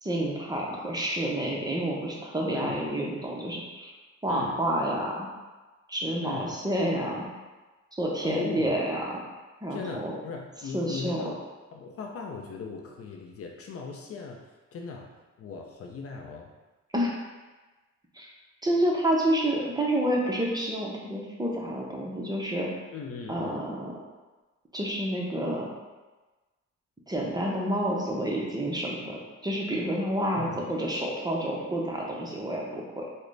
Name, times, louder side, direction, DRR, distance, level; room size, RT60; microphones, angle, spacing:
voice 1, 0.0-3.9 4.2-5.3 5.9-7.3 7.9-9.0 9.6-10.1 10.7-11.3 16.9-17.1 18.1-18.3 18.6-22.7 23.3-24.0 24.7-25.7 27.1-33.1, right 1 dB, 15° right, -3 dB, 0.7 m, -29 dB
voice 2, 2.5-2.8 4.3-4.6 6.2-6.5 8.2-8.8 9.7-11.4 11.7-14.4 14.7-15.1 15.4-16.5 22.9-23.6 30.3-30.7, left 4 dB, 50° left, 1 dB, 0.5 m, -38 dB
3.7 x 2.1 x 3.2 m, 1.2 s
cardioid pair, 90°, 30 cm